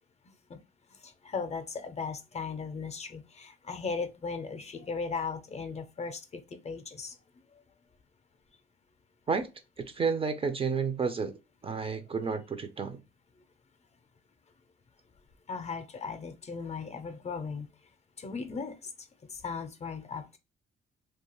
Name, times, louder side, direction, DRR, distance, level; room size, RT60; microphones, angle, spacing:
voice 1, 1.0-7.1 11.9-12.0 15.5-17.7 18.2-18.9 19.3-20.4, left 5 dB, 35° left, 0.5 m, -37 dB
voice 2, 9.8-11.4 11.6-13.0, right 5 dB, 30° right, 0.4 m, -31 dB
2.4 x 2.3 x 2.9 m
cardioid pair, 90°, 20 cm